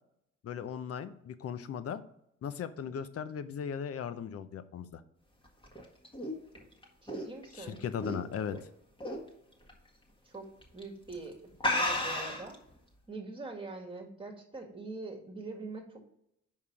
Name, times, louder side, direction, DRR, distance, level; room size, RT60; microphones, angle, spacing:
voice 1, 0.4-2.0 2.4-5.0 7.5-8.6, left 7 dB, 50° left, 13 dB, 0.7 m, -37 dB
sound 1, 5.5-8.6 9.0-9.3 9.7-9.8 10.6-10.8 11.1-11.2 11.6-12.5, left 1 dB, 15° left, 1.6 m, -33 dB
voice 2, 7.0-7.8 10.2-12.6 13.1-16.0, right 3 dB, 15° right, 2 dB, 1.8 m, -43 dB
5.5 x 4.8 x 5.9 m, 0.77 s
cardioid pair, 90°, 30 cm